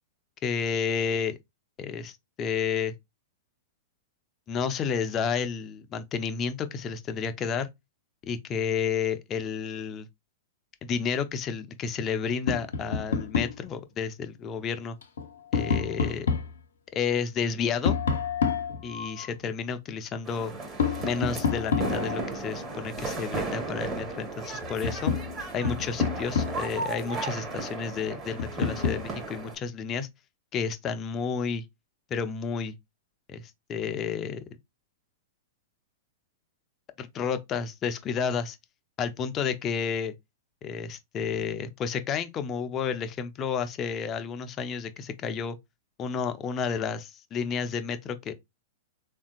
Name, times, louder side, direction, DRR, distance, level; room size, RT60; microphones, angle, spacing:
voice 1, 0.4-1.4 1.8-2.9 4.5-7.7 8.2-10.1 10.8-15.0 15.5-16.3 16.9-18.0 18.8-20.5 21.0-25.1 25.5-30.1 30.5-31.7 32.1-32.8 33.3-34.5 37.0-38.6 39.0-40.1 40.6-45.6 46.0-48.3, left 6 dB, 30° left, 0.5 m, -31 dB
Tap, 12.5-13.6 15.0-16.6 17.8-19.3 20.8-22.3 24.1-24.2 24.6-26.8 28.4-29.1, left 6 dB, 80° left, 0.6 m, -28 dB
sound 1, 20.2-29.5, right 3 dB, 25° right, 1.0 m, -35 dB
3.5 x 2.6 x 2.3 m
hypercardioid pair, 115°, 0 cm